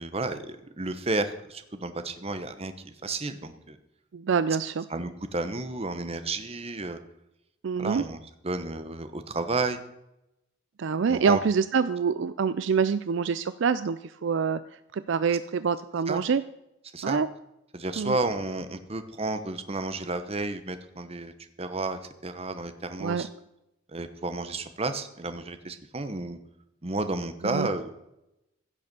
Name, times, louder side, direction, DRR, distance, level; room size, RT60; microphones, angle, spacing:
voice 1, 0.0-3.8 4.9-7.0 7.8-8.2 8.4-9.8 11.1-11.4 16.1-16.2 16.9-17.2 17.7-21.3 21.6-23.3 23.9-26.4 26.8-27.9, right 2 dB, 30° right, 9 dB, 1.0 m, -32 dB
voice 2, 4.1-4.8 7.6-8.0 10.8-16.4 17.0-17.3 18.0-18.2 23.0-23.3 27.4-27.7, right 6 dB, 60° right, 14 dB, 0.4 m, -26 dB
16.0 x 6.7 x 6.9 m, 0.86 s
head